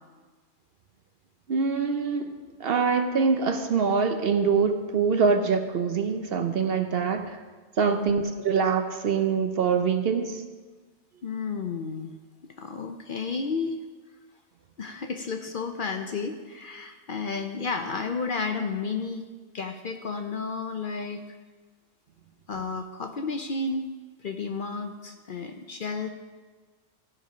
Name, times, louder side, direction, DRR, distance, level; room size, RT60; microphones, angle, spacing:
voice 1, 1.5-7.4 7.8-10.4, right 5 dB, 55° right, 7 dB, 0.8 m, -24 dB
voice 2, 11.2-12.1 12.6-13.8 14.8-19.3 19.5-21.3 22.5-23.9 24.2-26.1, left 4 dB, 50° left, 5 dB, 0.7 m, -32 dB
15.0 x 5.5 x 5.0 m, 1.4 s
omnidirectional pair, 1.3 m